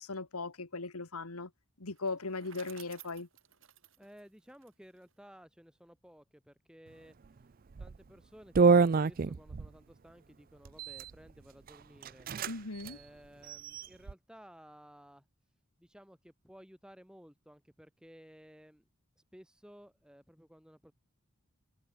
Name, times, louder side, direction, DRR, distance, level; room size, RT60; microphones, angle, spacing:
voice 1, 0.0-1.5 1.8-3.3 12.5-13.0, left 3 dB, 85° left, 1.9 m, -38 dB
Bicycle, 1.9-5.1, right 9 dB, 65° right, 4.7 m, -55 dB
voice 2, 4.0-7.5 7.8-12.3 12.8-15.3 15.8-18.8 19.2-20.9, equal, 5° right, 3.1 m, -56 dB
sound 1, 7.7-8.0 8.6-9.7 10.7-11.1 11.7-11.8 12.0-12.5 12.8-12.9 13.4-14.1, right 4 dB, 40° right, 0.4 m, -27 dB
head